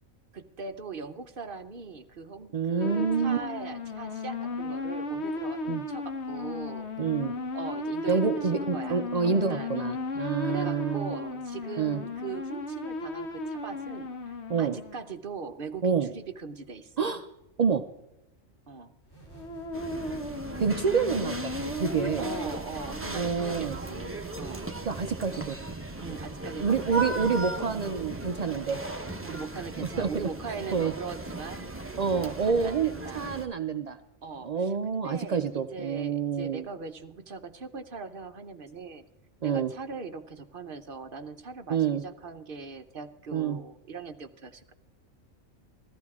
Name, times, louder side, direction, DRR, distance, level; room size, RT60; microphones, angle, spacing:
voice 1, 0.3-6.9 7.5-14.1 14.6-17.1 18.7-19.0 22.2-24.6 25.0-25.1 26.0-27.1 29.2-31.7 32.2-33.3 34.2-39.0 39.4-44.7, right 5 dB, 50° right, 9 dB, 0.8 m, -40 dB
voice 2, 2.5-3.4 5.7-5.8 7.0-7.3 8.1-11.2 11.8-12.0 14.5-14.8 15.8-16.1 17.0-17.3 17.6-17.8 20.6-22.3 23.1-23.8 24.9-25.6 26.6-28.8 29.8-30.9 32.0-34.0 34.4-36.7 39.4-39.7 41.7-42.0 43.3-43.6, right 6 dB, 75° right, 8 dB, 0.3 m, -28 dB
sound 1, 2.8-15.1 19.3-22.5, left 2 dB, 55° left, 1.3 m, -35 dB
sound 2, 19.0-28.4, right 2 dB, 15° left, 3.3 m, -49 dB
sound 3, 19.7-33.4, right 2 dB, 10° right, 0.8 m, -37 dB
15.5 x 14.0 x 3.6 m, 0.91 s
omnidirectional pair, 1.4 m